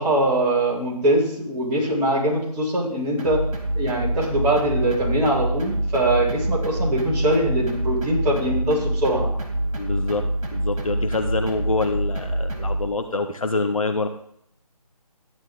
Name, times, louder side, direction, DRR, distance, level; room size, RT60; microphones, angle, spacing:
voice 1, 0.0-3.4 3.7-9.3, right 1 dB, 15° right, -8 dB, 3.6 m, -22 dB
sound 1, 3.2-12.9, right 1 dB, 55° right, 3.1 m, -26 dB
voice 2, 9.8-14.1, left 3 dB, 55° left, 6 dB, 1.3 m, -26 dB
14.5 x 10.5 x 3.7 m, 0.69 s
figure-of-eight pair, 160°, 20 cm